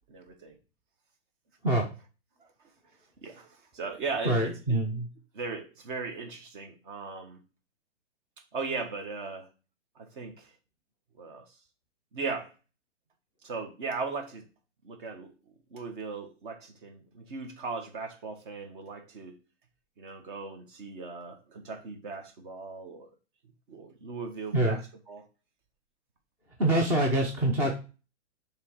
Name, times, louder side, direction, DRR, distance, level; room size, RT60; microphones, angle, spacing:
voice 1, 0.1-0.6 2.4-2.5 3.2-4.8 5.3-7.4 8.5-9.5 9.9-10.5 11.2-11.4 12.1-12.5 13.4-14.4 14.8-15.3 15.7-19.4 20.0-23.1 23.7-25.3, right 4 dB, 45° right, 1.6 m, -38 dB
voice 2, 4.2-5.1 24.5-24.8 26.6-27.7, right 1 dB, 5° right, 0.4 m, -25 dB
6.7 x 3.5 x 4.8 m
hypercardioid pair, 145°, 35 cm